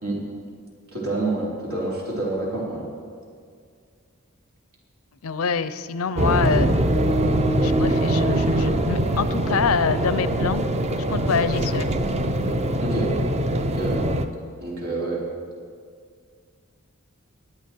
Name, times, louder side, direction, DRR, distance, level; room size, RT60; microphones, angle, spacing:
voice 1, 0.9-2.8 12.8-13.1 13.6-14.0 14.6-15.2, right 2 dB, 85° right, -4 dB, 3.7 m, -27 dB
voice 2, 5.2-6.8 7.6-10.6 11.1-11.9, left 6 dB, 85° left, 14 dB, 0.6 m, -25 dB
sound 1, 6.1-14.3, right 1 dB, 30° right, 0.6 m, -22 dB
20.0 x 9.0 x 4.5 m, 2.1 s
head